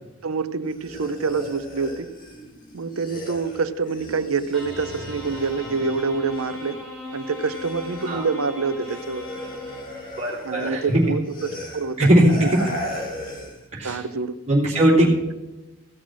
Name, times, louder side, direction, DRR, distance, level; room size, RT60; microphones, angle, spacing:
voice 1, 0.2-2.1 2.7-6.8 7.1-9.3 10.4-12.7 13.8-14.3 15.0-15.3, right 4 dB, 90° right, 12 dB, 0.7 m, -27 dB
sound 1, 0.6-6.9 7.1-13.7, left 1 dB, 40° left, 2.0 m, -37 dB
sound 2, 4.5-10.3, left 2 dB, ahead, 3.7 m, -38 dB
voice 2, 10.2-10.8 12.0-12.5 13.7-14.0 14.5-15.1, right 1 dB, 35° right, -4 dB, 3.1 m, -18 dB
16.5 x 6.3 x 6.2 m, 1.1 s
head